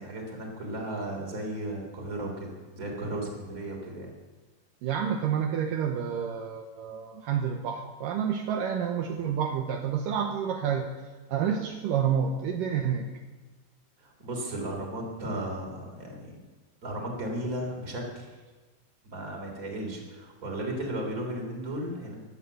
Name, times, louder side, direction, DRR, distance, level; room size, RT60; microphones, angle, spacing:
voice 1, 0.0-4.1 14.0-16.3 16.8-18.4 19.0-22.2, right 1 dB, 25° right, 0 dB, 3.5 m, -35 dB
voice 2, 4.8-10.9 11.3-13.1, right 8 dB, 75° right, 3 dB, 2.5 m, -29 dB
16.0 x 12.0 x 6.9 m, 1.3 s
omnidirectional pair, 4.2 m